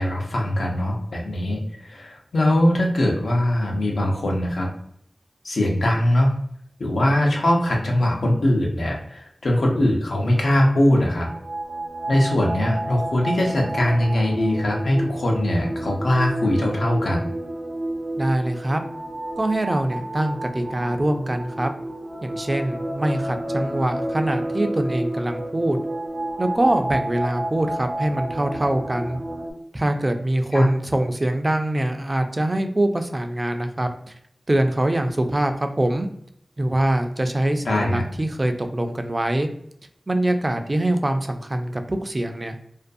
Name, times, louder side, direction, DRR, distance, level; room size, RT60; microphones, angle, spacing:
voice 1, 0.0-4.7 5.4-6.3 6.8-11.3 12.1-17.3 30.5-30.7 37.6-38.0, left 1 dB, 90° left, 0 dB, 0.6 m, -21 dB
sound 1, 11.1-29.5, right 1 dB, 80° right, 0.6 m, -30 dB
voice 2, 18.2-18.8 19.4-21.7 22.2-25.8 26.4-29.2 29.7-34.1 34.5-36.1 36.6-39.5 40.1-42.6, right 1 dB, 30° right, 6 dB, 0.3 m, -23 dB
2.5 x 2.3 x 2.5 m, 0.72 s
wide cardioid pair, 65°, 0 cm